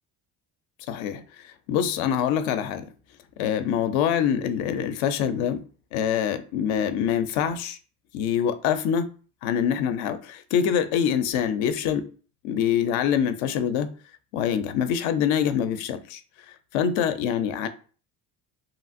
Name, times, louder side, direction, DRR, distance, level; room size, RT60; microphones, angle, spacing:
voice 1, 0.9-2.9 3.4-5.6 5.9-7.8 8.1-9.1 9.4-12.1 12.4-13.9 14.3-16.2 16.7-17.7, left 8 dB, 75° left, 0.5 m, -25 dB
3.1 x 2.4 x 2.5 m
supercardioid pair, 65°, 47 cm